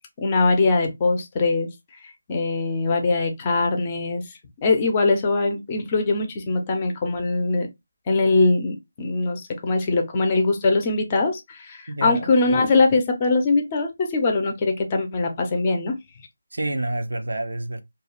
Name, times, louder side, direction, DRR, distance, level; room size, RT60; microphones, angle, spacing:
voice 1, 0.2-1.7 2.3-4.2 4.6-7.7 8.1-16.0, left 3 dB, 25° left, 0.6 m, -22 dB
voice 2, 11.9-12.3 16.5-17.8, right 2 dB, 80° right, 0.5 m, -28 dB
2.3 x 2.3 x 3.1 m
figure-of-eight pair, 165°, 0 cm